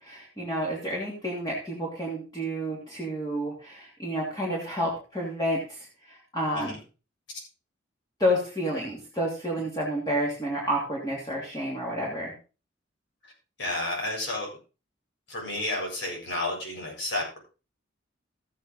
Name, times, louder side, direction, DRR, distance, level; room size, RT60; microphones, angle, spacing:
voice 1, 0.0-5.9 6.3-6.7 8.2-12.3, equal, 20° left, -4 dB, 2.9 m, -30 dB
voice 2, 13.6-14.5 15.3-17.4, left 1 dB, 75° left, -1 dB, 7.7 m, -31 dB
14.0 x 8.8 x 4.0 m, 0.33 s
head